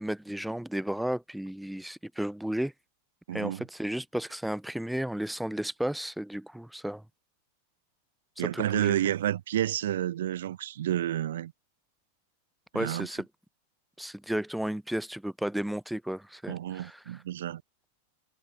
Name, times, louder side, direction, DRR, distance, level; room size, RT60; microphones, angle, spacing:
voice 1, 0.0-2.7 3.3-7.0 8.4-9.0 12.7-13.2 14.0-17.2, right 1 dB, ahead, 1.4 m, -33 dB
voice 2, 3.3-3.6 8.4-11.5 12.7-13.1 16.5-17.6, right 12 dB, 60° right, 1.0 m, -30 dB
figure-of-eight pair, 90°, 0 cm